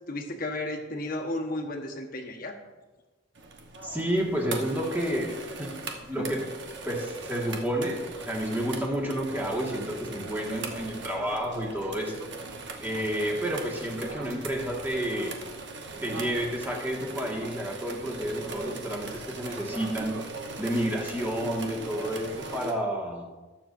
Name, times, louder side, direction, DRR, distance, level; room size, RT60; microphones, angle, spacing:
voice 1, 0.1-2.5 6.2-6.3, left 1 dB, 45° left, 3 dB, 1.2 m, -33 dB
sound 1, 3.4-22.7, right 3 dB, 60° right, 1.1 m, -40 dB
voice 2, 3.8-5.8 6.1-6.5 6.8-12.3 12.8-15.4 16.0-20.2 20.6-23.2, equal, 10° right, -2 dB, 1.7 m, -30 dB
19.5 x 7.1 x 2.6 m, 1.2 s
head